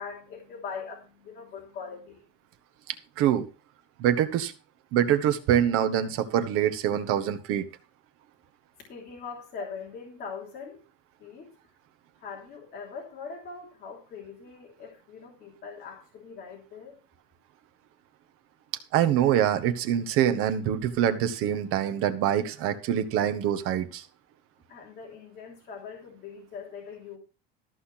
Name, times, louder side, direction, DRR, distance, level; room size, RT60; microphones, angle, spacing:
voice 1, 0.0-2.2 8.9-10.8 11.2-11.5 12.2-17.0 24.7-27.2, left 5 dB, 35° left, -3 dB, 3.3 m, -41 dB
voice 2, 4.0-4.5 4.9-7.6 18.9-24.0, right 10 dB, 50° right, 9 dB, 1.5 m, -25 dB
14.0 x 5.5 x 5.8 m, 0.34 s
cardioid pair, 155°, 29 cm